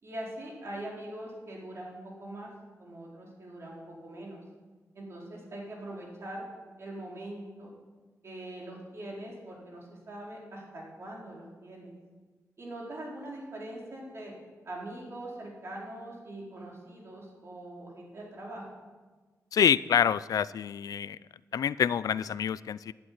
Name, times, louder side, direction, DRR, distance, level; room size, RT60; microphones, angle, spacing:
voice 1, 0.0-2.5 2.8-4.4 4.9-6.4 6.8-7.7 8.2-11.9 12.6-14.3 14.6-18.7, right 1 dB, 45° right, -3 dB, 4.6 m, -42 dB
voice 2, 19.5-21.2 21.5-22.9, left 8 dB, 80° left, 17 dB, 0.4 m, -26 dB
12.0 x 11.5 x 9.7 m, 1.3 s
wide cardioid pair, 140°, 6 cm